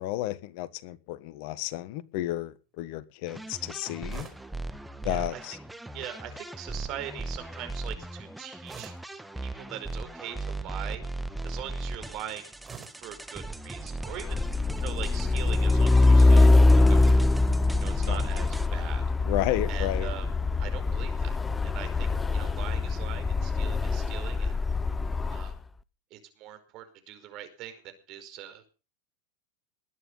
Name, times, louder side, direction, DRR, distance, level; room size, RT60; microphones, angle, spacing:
voice 1, 0.0-4.3 5.0-5.6 18.0-18.2 19.3-20.1, left 15 dB, 60° left, 1.4 m, -32 dB
sound 1, 3.3-18.7, right 2 dB, 5° right, 1.7 m, -38 dB
sound 2, 4.1-4.6 6.2-6.6 8.6-9.2 9.7-10.0 12.6-13.1 14.4-14.8 16.8-17.4, right 6 dB, 25° right, 4.7 m, -47 dB
voice 2, 5.0-5.4 5.9-8.9 9.4-11.0 11.4-12.5 13.0-17.3 17.8-19.0 19.7-20.3 20.6-24.5 25.3-25.5 26.1-28.6, right 11 dB, 50° right, 5.1 m, -42 dB
Truck, 14.1-25.5, left 2 dB, 15° left, 1.0 m, -23 dB
20.5 x 9.7 x 5.6 m
hypercardioid pair, 95°, 0 cm